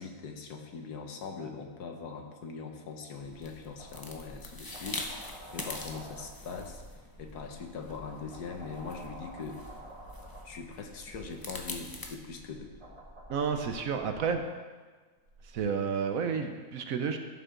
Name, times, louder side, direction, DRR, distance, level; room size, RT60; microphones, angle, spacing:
voice 1, 0.0-6.8 7.2-9.6 10.4-12.7, left 5 dB, 75° left, 3 dB, 1.6 m, -41 dB
sound 1, 3.2-12.2, left 2 dB, 35° left, 0.3 m, -44 dB
sound 2, 3.5-14.4 15.2-15.6, right 1 dB, 20° right, 1.3 m, -49 dB
voice 2, 13.3-14.5 15.5-17.2, right 6 dB, 65° right, 6 dB, 1.0 m, -31 dB
15.0 x 5.9 x 3.7 m, 1.4 s
omnidirectional pair, 1.7 m